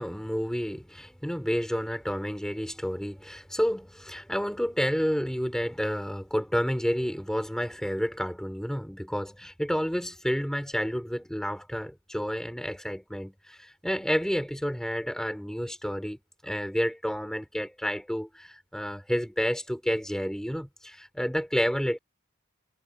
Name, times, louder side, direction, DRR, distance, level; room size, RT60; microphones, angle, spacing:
voice 1, 0.0-22.0, equal, ahead, 5.7 m, -30 dB
head